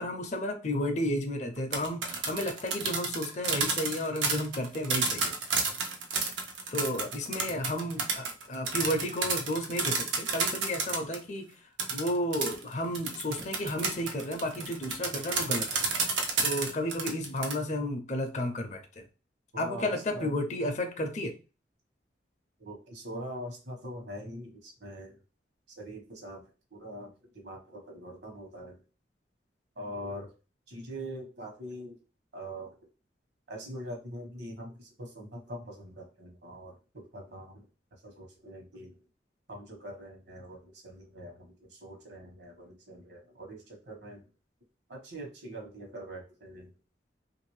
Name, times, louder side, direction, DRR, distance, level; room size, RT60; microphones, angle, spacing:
voice 1, 0.0-5.3 6.7-11.5 11.9-15.7 16.4-19.0 19.6-21.3, left 1 dB, 40° left, 6 dB, 0.5 m, -32 dB
sound 1, 1.6-11.2 11.8-17.5, right 4 dB, 90° right, 0.7 m, -31 dB
voice 2, 19.5-20.4 22.6-25.2 25.8-26.4 26.7-28.8 29.7-30.3 30.7-32.0 32.3-32.7 33.5-37.7 37.9-38.9 39.5-44.2 44.9-46.7, equal, 70° right, 1 dB, 1.1 m, -43 dB
2.9 x 2.6 x 3.1 m, 0.33 s
head